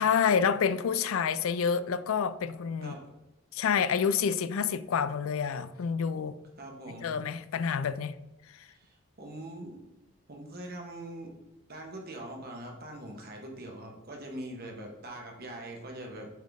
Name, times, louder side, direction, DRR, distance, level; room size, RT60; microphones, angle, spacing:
voice 1, 0.0-3.0 3.5-6.4 7.0-8.1, left 6 dB, 80° left, 0.4 m, -28 dB
voice 2, 6.6-7.1 8.7-9.8 10.3-11.3 11.7-16.3, right 1 dB, 50° right, 1.3 m, -42 dB
7.4 x 3.8 x 3.6 m
head